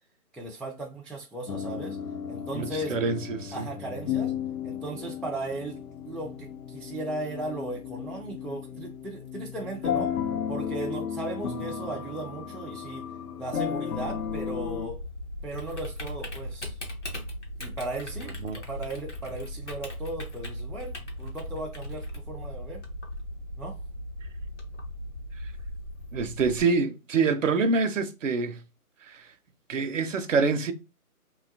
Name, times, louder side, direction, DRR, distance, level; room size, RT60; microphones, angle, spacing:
voice 1, 0.3-2.0 2.3-3.0 3.5-4.3 4.6-10.2 10.5-13.1 13.4-15.0 15.4-16.8 17.6-22.8 23.6-23.8, right 2 dB, 5° left, 0.3 m, -37 dB
sound 1, 1.5-14.9, left 8 dB, 85° left, 0.6 m, -34 dB
voice 2, 2.5-3.7 18.4-18.6 26.1-28.6 29.1-29.3 29.7-30.7, right 4 dB, 60° right, 0.5 m, -26 dB
Typing, 13.9-26.6, equal, 50° left, 0.9 m, -38 dB
2.7 x 2.2 x 2.6 m
hypercardioid pair, 175°, 45 cm